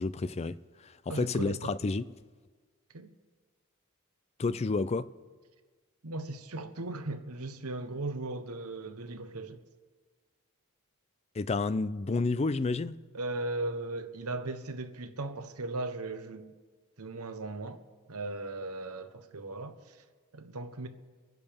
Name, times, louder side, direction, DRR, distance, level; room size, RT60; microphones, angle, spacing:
voice 1, 0.0-2.1 4.4-5.1 11.3-13.0, left 3 dB, 30° left, 0.4 m, -30 dB
voice 2, 1.1-1.8 2.9-3.1 6.0-9.6 13.1-16.5 17.0-17.8 18.1-20.0 20.3-20.9, right 2 dB, 90° right, 1.0 m, -37 dB
25.0 x 10.5 x 3.5 m
head